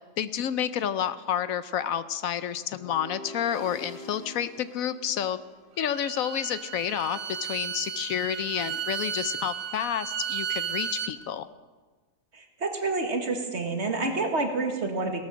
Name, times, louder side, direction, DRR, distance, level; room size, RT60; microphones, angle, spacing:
voice 1, 0.2-5.4 5.8-11.5, left 9 dB, 70° left, 14 dB, 1.0 m, -30 dB
sound 1, 2.7-6.0, left 1 dB, 30° left, 2.6 m, -45 dB
Bowed string instrument, 5.8-11.1, right 8 dB, 65° right, 1.2 m, -34 dB
voice 2, 12.3-15.2, right 3 dB, 50° right, 4 dB, 2.0 m, -28 dB
17.5 x 12.5 x 6.3 m, 1.4 s
omnidirectional pair, 1.5 m